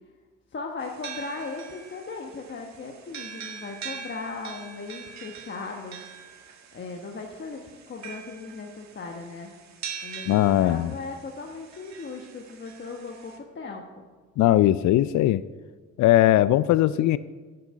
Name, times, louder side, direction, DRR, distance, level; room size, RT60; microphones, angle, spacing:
voice 1, 0.5-6.0 6.7-9.5 10.0-14.0, left 3 dB, 40° left, 1 dB, 1.2 m, -38 dB
sound 1, 0.8-13.4, right 6 dB, 65° right, 1.6 m, -43 dB
voice 2, 10.3-10.9 14.4-15.4 16.0-17.2, left 14 dB, 70° left, 15 dB, 0.5 m, -19 dB
11.0 x 6.8 x 8.6 m, 1.4 s
cardioid pair, 90°, 30 cm